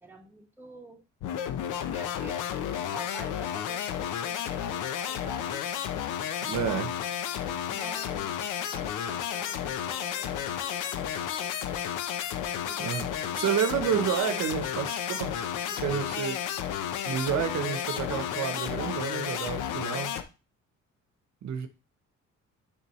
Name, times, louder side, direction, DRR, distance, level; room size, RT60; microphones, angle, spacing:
voice 1, 0.0-1.0 1.8-5.6 7.2-11.6 12.5-12.9 13.3-13.6 13.9-14.0 15.6-16.0, right 1 dB, 5° right, 1.3 m, -48 dB
sound 1, 1.2-20.2, left 9 dB, 85° left, 0.7 m, -32 dB
voice 2, 6.4-6.9 12.8-13.1 13.3-15.4 15.8-16.4 17.1-20.1 21.4-21.7, right 8 dB, 65° right, 0.9 m, -30 dB
6.9 x 5.3 x 3.1 m
cardioid pair, 90°, 30 cm